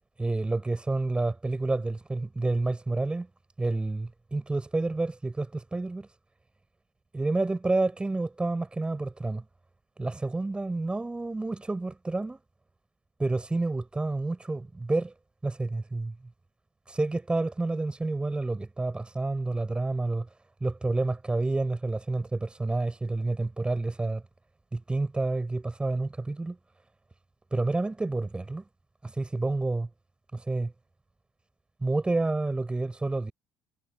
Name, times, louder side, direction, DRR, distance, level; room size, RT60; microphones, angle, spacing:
voice 1, 0.2-3.3 3.6-6.1 7.1-9.4 10.0-12.4 13.2-15.1 15.4-16.1 16.9-20.3 20.6-24.2 24.7-26.6 27.5-28.6 29.0-29.9 30.3-30.7 31.8-33.3, right 2 dB, 20° right, 7.2 m, -29 dB
supercardioid pair, 70°, 6 cm